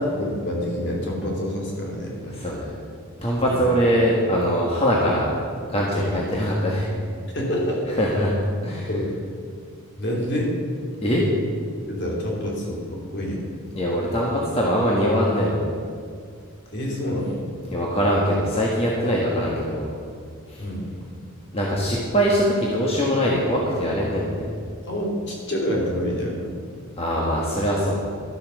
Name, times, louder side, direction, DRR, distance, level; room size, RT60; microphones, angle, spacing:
voice 1, 0.2-2.4 3.5-3.7 7.3-8.0 8.9-9.1 10.0-10.6 11.9-13.4 16.7-17.5 20.6-20.9 24.8-26.5, equal, 55° left, -2 dB, 2.9 m, -27 dB
voice 2, 2.3-2.7 3.2-5.3 5.7-6.9 8.0-8.3 8.6-8.9 11.0-11.2 13.7-15.7 17.7-19.9 20.5-20.6 21.5-24.5 27.0-28.0, equal, 30° left, -4 dB, 1.5 m, -22 dB
12.5 x 8.5 x 6.3 m, 2.2 s
head